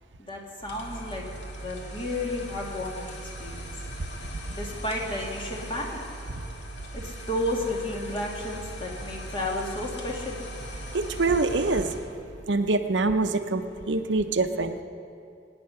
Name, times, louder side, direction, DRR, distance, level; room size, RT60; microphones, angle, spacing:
voice 1, 0.2-1.2 1.6-3.7 4.5-6.0 6.9-10.4, left 1 dB, 30° left, -1 dB, 2.2 m, -32 dB
sound 1, 0.6-12.1, right 1 dB, 70° left, 2.1 m, -39 dB
voice 2, 10.9-11.9 12.5-14.8, right 3 dB, 75° right, 8 dB, 0.8 m, -25 dB
24.0 x 9.9 x 5.7 m, 2.6 s
head